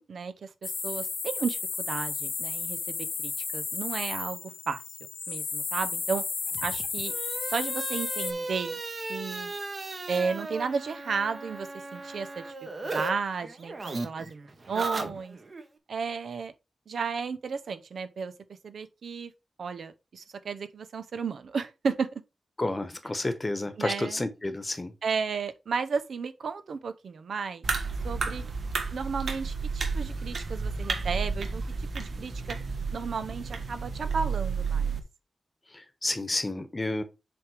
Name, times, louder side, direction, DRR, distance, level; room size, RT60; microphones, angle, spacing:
voice 1, 0.0-4.8 5.3-6.2 6.6-7.1 7.4-8.8 9.1-9.5 10.1-12.5 12.8-15.4 15.9-16.5 16.9-18.3 18.6-19.3 19.6-22.1 23.8-24.2 25.0-27.7 28.0-28.4 28.9-32.6 32.9-35.0, right 5 dB, 85° right, 0.8 m, -33 dB
sound 1, 0.6-8.3, left 4 dB, 55° left, 0.8 m, -33 dB
sound 2, 6.5-13.1 13.4-15.6, right 2 dB, 40° right, 1.2 m, -37 dB
voice 2, 22.6-24.9 35.7-37.0, left 2 dB, 25° left, 1.1 m, -30 dB
sound 3, 27.6-35.0, right 5 dB, 65° right, 1.3 m, -31 dB
7.7 x 3.5 x 5.0 m
wide cardioid pair, 135°, 0 cm